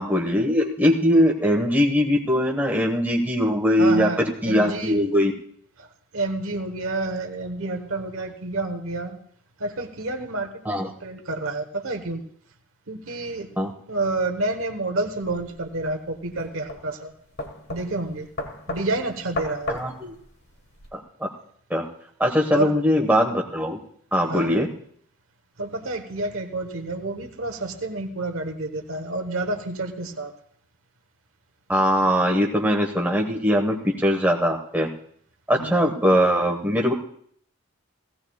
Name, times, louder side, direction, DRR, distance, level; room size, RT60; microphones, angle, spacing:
voice 1, 0.0-5.3 10.6-10.9 13.6-13.7 19.7-20.1 20.9-21.3 21.7-21.9 22.2-23.8 24.1-24.7 31.7-34.9 35.5-36.9, equal, 10° right, 0 dB, 1.3 m, -21 dB
voice 2, 3.8-5.0 5.8-5.9 6.1-9.2 9.6-12.2 12.9-13.5 13.9-17.1 17.7-18.3 18.7-19.7 22.5-22.7 24.3-24.5 25.6-30.3 35.6-35.7, right 2 dB, 75° right, 5 dB, 1.2 m, -29 dB
sound 1, 15.2-20.9, left 2 dB, 50° left, 1.5 m, -35 dB
17.5 x 16.0 x 2.4 m, 0.63 s
head